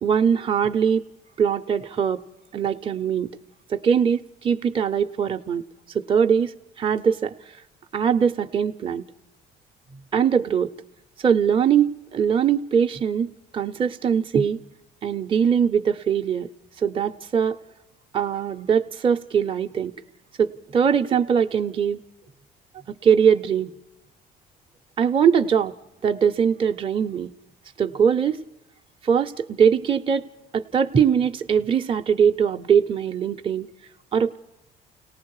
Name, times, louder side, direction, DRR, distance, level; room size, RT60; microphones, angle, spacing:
voice 1, 0.0-1.0 1.4-2.2 2.5-3.3 3.7-5.6 5.9-7.3 7.9-9.0 10.1-10.7 11.2-14.6 15.0-16.5 16.8-17.6 18.1-19.9 20.4-22.0 22.9-23.7 25.0-25.7 26.0-27.3 27.8-28.4 29.0-30.3 30.5-33.7 34.1-34.4, right 7 dB, 30° right, 6 dB, 0.7 m, -21 dB
30.0 x 18.5 x 4.8 m, 0.90 s
cardioid pair, 110°, 17 cm